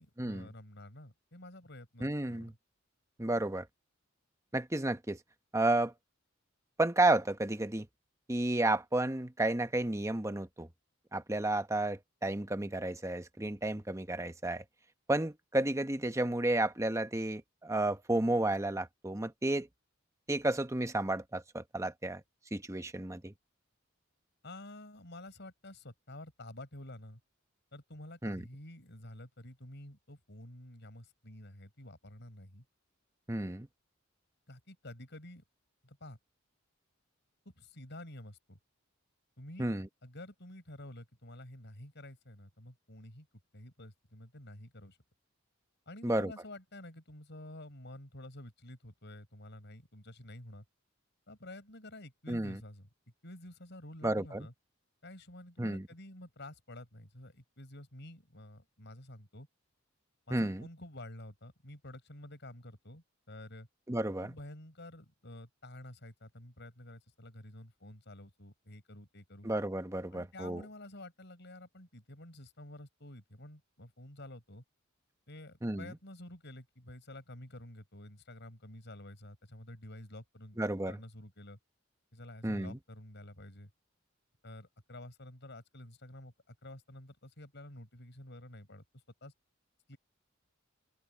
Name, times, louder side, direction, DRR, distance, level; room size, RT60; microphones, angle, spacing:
voice 1, 0.0-2.6 24.4-27.2 27.7-32.6 34.5-35.4 35.8-36.2 37.4-38.6 39.4-39.7 40.0-43.3 43.5-45.0 45.9-50.6 51.3-52.9 53.2-54.5 55.0-59.5 60.3-63.7 64.2-69.5 70.1-74.6 75.3-80.6 80.8-81.6 82.1-83.7 84.4-88.8 89.2-89.3 89.9-90.0, left 1 dB, 60° left, 6.0 m, -50 dB
voice 2, 2.0-2.5 3.2-3.7 4.5-5.2 5.5-5.9 6.8-7.9 8.3-10.7 11.1-14.6 15.1-19.7 20.3-22.2 22.5-23.3 28.2-28.4 33.3-33.7 39.6-39.9 46.0-46.3 52.3-52.6 54.0-54.5 55.6-55.9 60.3-60.7 63.9-64.3 69.4-70.6 75.6-75.9 80.6-81.0 82.4-82.8, right 2 dB, 15° right, 1.1 m, -32 dB
open air
head